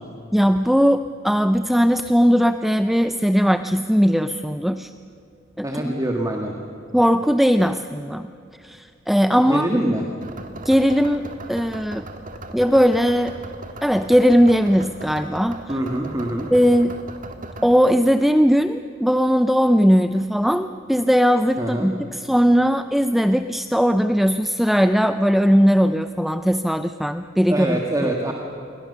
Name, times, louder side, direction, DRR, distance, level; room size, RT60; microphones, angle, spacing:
voice 1, 0.3-4.9 5.6-5.9 6.9-8.3 8.6-9.7 10.6-12.0 12.5-13.4 13.8-15.8 16.5-16.9 17.6-28.3, equal, ahead, 9 dB, 0.5 m, -19 dB
voice 2, 5.6-6.5 9.5-10.1 15.7-16.5 21.6-21.9 27.5-28.3, right 1 dB, 20° right, 1 dB, 1.9 m, -24 dB
sound 1, 10.2-17.8, right 1 dB, 45° right, 1.9 m, -37 dB
28.0 x 22.5 x 6.8 m, 2.7 s
head